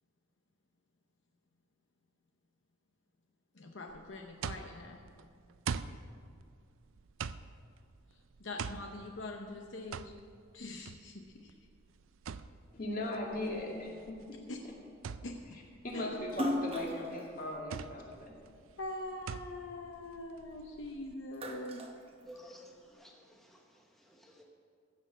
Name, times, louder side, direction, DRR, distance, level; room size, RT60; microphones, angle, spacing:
voice 1, 3.5-5.0 8.1-10.1 10.5-11.5 14.5-14.6 15.2-15.6 15.9-16.1 18.8-21.8, left 2 dB, 65° left, 3 dB, 0.8 m, -43 dB
sound 1, 3.9-21.1, right 6 dB, 75° right, 0.4 m, -45 dB
voice 2, 12.7-14.4 15.1-15.2 15.8-18.4, left 1 dB, 45° left, -2 dB, 2.3 m, -38 dB
Splash splatter, 16.3-18.8 19.3-20.8 21.1-22.8, left 1 dB, 30° right, 0.9 m, -39 dB
voice 3, 22.2-24.4, right 1 dB, ahead, 0 dB, 0.9 m, -55 dB
15.5 x 6.7 x 6.3 m, 2.3 s
head